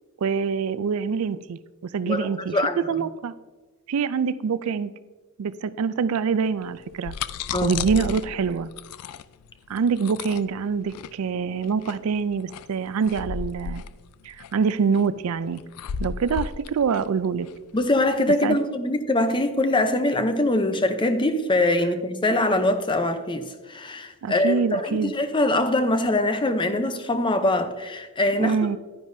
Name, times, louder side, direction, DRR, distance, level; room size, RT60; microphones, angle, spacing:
voice 1, 0.2-3.3 3.9-4.9 5.4-7.2 7.6-8.7 9.7-13.8 14.2-15.6 16.0-17.5 18.4-18.6 24.2-25.1 28.4-28.8, right 6 dB, 70° right, 0.4 m, -25 dB
voice 2, 2.1-3.1 7.5-7.7 17.7-28.6, left 1 dB, 20° left, 0.7 m, -23 dB
sound 1, 6.7-18.2, left 6 dB, 80° left, 0.4 m, -35 dB
11.0 x 9.9 x 2.7 m
head